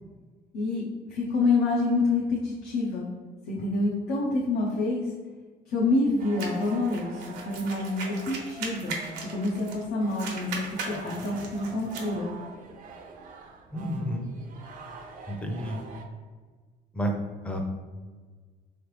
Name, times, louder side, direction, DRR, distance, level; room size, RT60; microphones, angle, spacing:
voice 1, 0.5-3.1 3.5-5.1 5.7-9.0 9.3-12.3, left 3 dB, 65° left, -4 dB, 0.7 m, -27 dB
sound 1, 6.2-16.1, right 4 dB, 55° right, 0.5 m, -45 dB
sound 2, 6.4-9.8 10.1-12.1, right 4 dB, 80° right, 0.8 m, -38 dB
voice 2, 13.7-14.3 15.3-15.8 16.9-17.1 17.4-17.6, equal, 5° left, 2 dB, 0.6 m, -30 dB
3.7 x 3.3 x 3.2 m, 1.4 s
cardioid pair, 110°, 17 cm